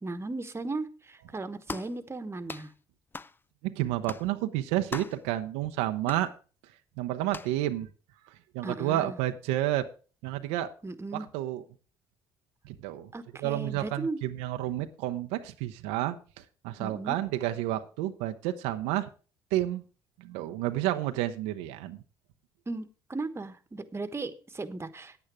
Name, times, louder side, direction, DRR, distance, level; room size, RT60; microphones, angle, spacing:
voice 1, 0.0-2.7 8.6-9.2 10.8-11.3 13.1-14.2 16.8-17.2 22.7-25.2, right 3 dB, 20° right, 10 dB, 1.2 m, -36 dB
sound 1, 1.7-2.0 2.5-2.7 3.1-3.4 4.1-4.3 4.9-5.2 6.1-6.3 7.3-7.6, left 3 dB, 20° left, 0.4 m, -39 dB
voice 2, 3.6-6.3 7.0-7.9 8.3-9.9 10.2-10.7 11.1-11.6 12.6-13.1 13.4-19.1 19.5-19.8 20.2-22.0, right 14 dB, 80° right, 7 dB, 0.7 m, -30 dB
9.5 x 9.0 x 4.9 m, 0.37 s
hypercardioid pair, 65°, 11 cm